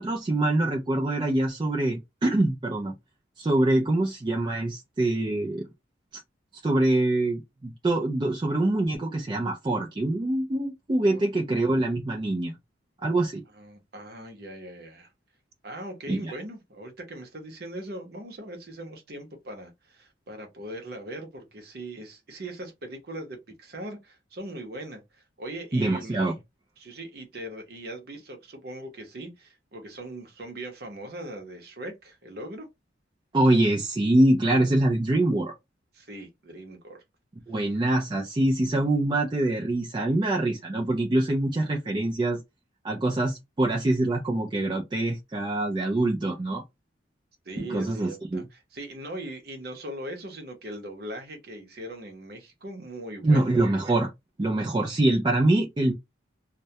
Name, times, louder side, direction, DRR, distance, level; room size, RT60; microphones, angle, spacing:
voice 1, 0.0-2.9 3.4-5.7 6.6-12.6 13.0-13.4 16.1-16.3 25.7-26.4 33.3-35.5 37.5-42.4 42.8-46.6 47.6-48.5 53.2-54.1 54.4-55.9, right 2 dB, 25° right, 0.3 m, -24 dB
voice 2, 13.5-15.1 15.6-26.3 26.8-32.7 35.9-37.0 47.4-48.4 48.7-53.5, right 1 dB, 55° right, 0.7 m, -40 dB
2.1 x 2.1 x 2.7 m
head